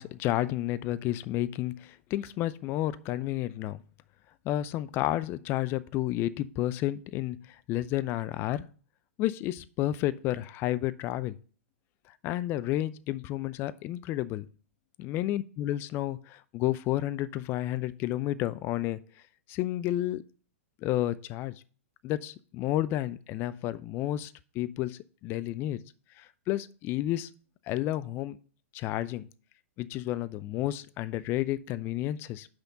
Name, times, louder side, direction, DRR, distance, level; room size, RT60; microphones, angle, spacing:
voice 1, 0.0-3.8 4.4-8.7 9.2-11.4 12.2-14.5 15.0-19.0 19.5-20.3 20.8-21.5 22.0-25.8 26.2-27.3 27.7-28.4 28.7-29.3 29.8-32.5, left 14 dB, 30° left, 15 dB, 0.4 m, -31 dB
6.1 x 5.1 x 5.6 m, 0.41 s
figure-of-eight pair, 110°, 7 cm